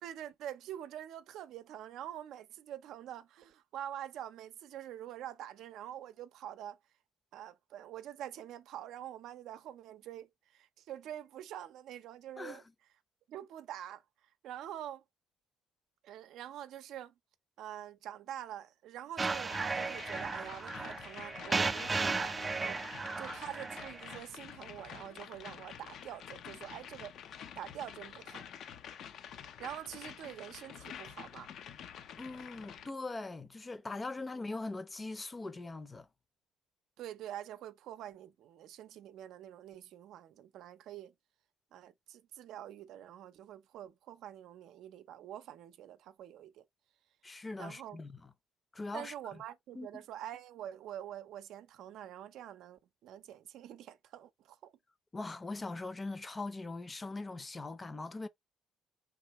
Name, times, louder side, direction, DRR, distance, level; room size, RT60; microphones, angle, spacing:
voice 1, 0.0-6.8 7.3-12.6 13.3-15.0 16.0-17.1 17.6-22.8 23.2-27.1 27.6-28.4 29.6-31.5 37.0-41.1 41.7-46.7 47.6-48.0 48.9-54.7, right 11 dB, 75° right, 0.6 m, -46 dB
sound 1, 19.2-24.2, right 4 dB, 25° right, 0.4 m, -35 dB
sound 2, 19.5-32.9, left 8 dB, 65° left, 0.7 m, -48 dB
voice 2, 32.2-36.1 47.2-48.2 48.7-49.4 49.7-50.0 55.1-58.3, left 3 dB, 25° left, 0.7 m, -41 dB
4.4 x 3.7 x 3.0 m
supercardioid pair, 80°, 0 cm